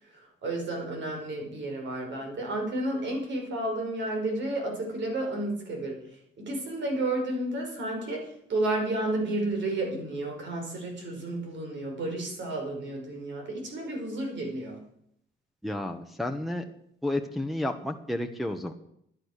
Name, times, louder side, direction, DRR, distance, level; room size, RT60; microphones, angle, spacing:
voice 1, 0.0-14.8, right 2 dB, 65° right, 1 dB, 5.7 m, -32 dB
voice 2, 15.6-16.6 17.0-18.7, left 1 dB, ahead, 3 dB, 1.2 m, -31 dB
13.0 x 10.5 x 6.6 m, 0.71 s
cardioid pair, 90°, 20 cm